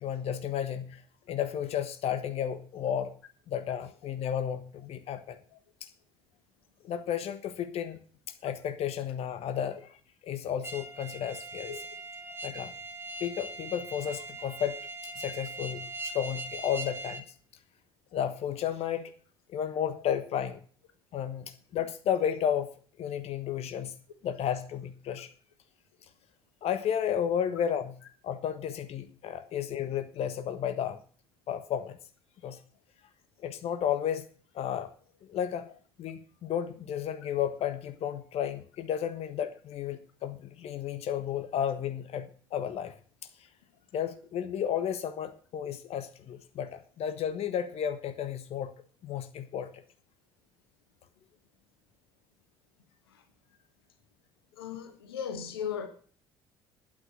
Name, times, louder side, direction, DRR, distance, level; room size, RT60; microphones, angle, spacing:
voice 1, 0.0-1.0 1.3-3.1 3.5-5.4 5.8-5.9 6.8-8.0 8.4-10.0 10.2-11.8 12.4-12.7 13.2-14.8 15.2-17.2 18.1-19.1 19.5-20.6 21.1-22.7 23.0-24.0 24.2-25.3 26.6-28.0 28.2-31.0 31.5-32.0 32.4-32.6 33.4-34.3 34.5-34.9 35.2-35.7 36.0-42.9 43.9-48.7 49.0-49.8, left 9 dB, 55° left, 1.3 m, -32 dB
sound 1, 10.6-17.2, right 2 dB, 20° right, 2.5 m, -41 dB
voice 2, 54.6-55.9, left 7 dB, 80° left, 1.5 m, -36 dB
12.0 x 9.1 x 5.9 m
hypercardioid pair, 55°, 12 cm